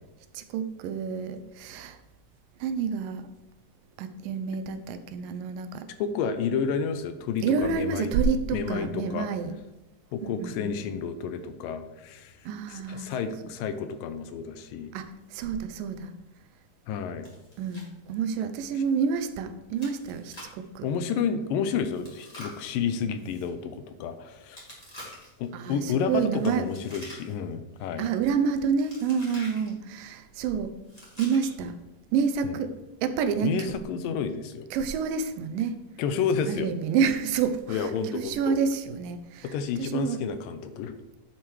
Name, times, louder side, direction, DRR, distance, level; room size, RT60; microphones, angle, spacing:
voice 1, 0.3-2.0 2.6-3.3 4.0-5.9 7.4-9.5 10.2-10.9 12.5-13.1 14.9-16.1 17.6-20.9 25.5-26.7 28.0-30.8 31.2-31.8 32.1-33.7 34.7-35.8 36.5-39.5 39.8-40.2, right 6 dB, 80° right, 9 dB, 2.2 m, -28 dB
voice 2, 6.0-8.1 8.5-9.3 10.1-14.9 16.9-17.3 18.8-18.9 20.8-24.7 25.4-28.0 32.4-32.6 33.4-34.7 36.0-36.7 37.7-38.6 39.4-41.0, left 6 dB, 80° left, 10 dB, 2.2 m, -30 dB
Chewing mastication, 17.2-17.9 18.2-18.3 18.8-18.9 19.8-20.6 21.9-23.5 24.5-25.4 26.3-27.5 27.8-28.2 28.9-29.7 30.8-31.7, left 1 dB, 10° left, 2.2 m, -46 dB
9.9 x 7.7 x 3.2 m, 1.0 s
omnidirectional pair, 4.2 m